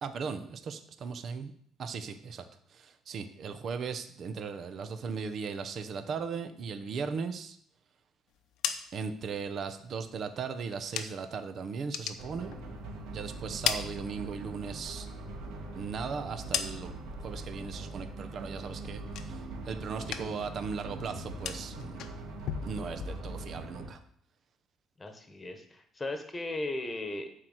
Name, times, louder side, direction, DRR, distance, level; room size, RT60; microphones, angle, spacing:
voice 1, 0.0-1.5 1.8-2.4 2.7-7.6 8.9-12.5 13.1-15.1 15.7-22.0 22.6-24.0, right 5 dB, 40° right, 8 dB, 0.9 m, -37 dB
sound 1, 8.3-11.4 11.7-13.1 13.4-14.7 15.0-17.2 17.5-18.0 18.3-19.7 19.9-20.5 20.8-23.7, left 9 dB, 70° left, 0.9 m, -39 dB
sound 2, 12.2-23.9, right 2 dB, 90° right, 2.6 m, -42 dB
voice 2, 25.0-27.4, left 2 dB, 15° left, 6 dB, 1.4 m, -37 dB
11.5 x 4.6 x 8.0 m, 0.65 s
cardioid pair, 150°, 0 cm